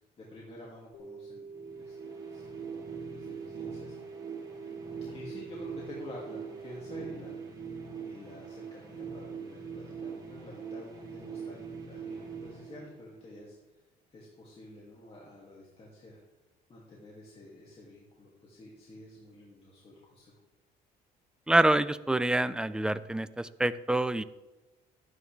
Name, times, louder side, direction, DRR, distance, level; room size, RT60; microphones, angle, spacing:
voice 1, 0.2-2.4 3.1-3.9 5.1-7.4 8.0-13.6 14.1-16.2 16.7-20.3, left 1 dB, 35° left, -4 dB, 2.5 m, -49 dB
sound 1, 0.9-7.0, right 4 dB, 60° left, 2.5 m, -46 dB
sound 2, 1.5-13.4, right 6 dB, 25° right, 4.1 m, -42 dB
voice 2, 21.5-24.2, right 1 dB, 5° right, 15 dB, 0.4 m, -26 dB
12.5 x 9.6 x 3.4 m, 1.1 s
cardioid pair, 110°, 17 cm